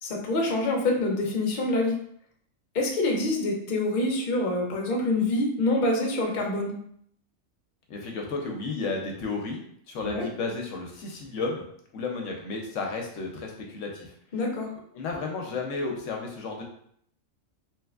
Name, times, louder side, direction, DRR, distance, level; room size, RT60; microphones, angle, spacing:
voice 1, 0.0-2.0 2.7-6.8 10.0-10.2 14.3-14.7, left 2 dB, 50° left, 0 dB, 0.7 m, -26 dB
voice 2, 7.9-9.6 9.9-11.6 11.9-14.1 14.9-16.6, left 3 dB, 75° left, 1 dB, 0.9 m, -32 dB
3.2 x 3.0 x 2.3 m, 0.67 s
omnidirectional pair, 1.4 m